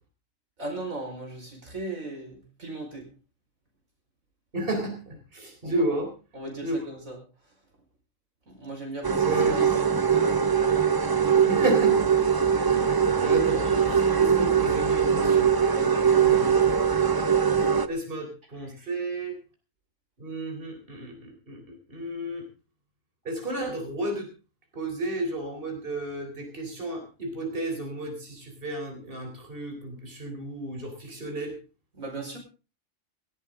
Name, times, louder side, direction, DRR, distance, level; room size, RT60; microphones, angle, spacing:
voice 1, 0.6-3.1 5.6-5.8 6.3-7.2 8.5-9.9 15.8-16.4 18.8-18.9 32.0-32.4, right 2 dB, 85° right, 2 dB, 5.2 m, -37 dB
voice 2, 4.5-6.1 6.6-6.8 9.2-9.6 11.5-12.1 12.5-15.5 16.2-16.7 17.9-19.4 20.2-22.5 23.2-24.3 24.7-31.6, right 1 dB, 40° right, 3 dB, 4.1 m, -32 dB
sound 1, 9.0-17.9, right 7 dB, 25° right, 0.6 m, -22 dB
18.0 x 14.5 x 3.7 m, 0.34 s
omnidirectional pair, 1.4 m